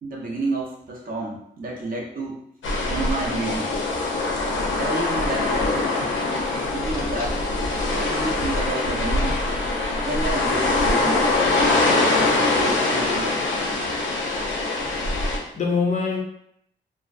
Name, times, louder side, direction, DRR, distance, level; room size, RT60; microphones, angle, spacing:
voice 1, 0.0-2.4 2.9-3.7 4.7-5.8 6.7-7.4 7.9-9.4 10.0-13.4, right 2 dB, 45° right, -3 dB, 0.6 m, -30 dB
sound 1, 2.6-15.4, left 2 dB, 90° left, 0.5 m, -23 dB
voice 2, 14.8-16.2, left 5 dB, 40° left, 1 dB, 0.4 m, -26 dB
2.4 x 2.1 x 2.4 m, 0.73 s
wide cardioid pair, 160°, 19 cm